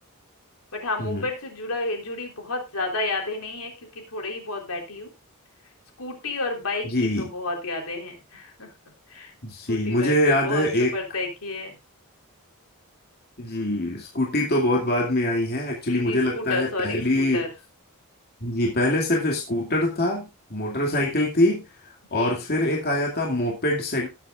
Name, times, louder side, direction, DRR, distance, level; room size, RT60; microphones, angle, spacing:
voice 1, 0.7-5.1 6.0-8.7 9.1-9.3 9.7-10.7 10.9-11.8 15.9-17.5 20.8-21.2 22.1-22.4, left 2 dB, 75° left, 2 dB, 3.7 m, -31 dB
voice 2, 6.8-7.3 9.4-10.9 13.4-17.4 18.4-24.1, left 1 dB, 45° left, -1 dB, 2.5 m, -24 dB
19.5 x 7.8 x 2.5 m, 0.25 s
head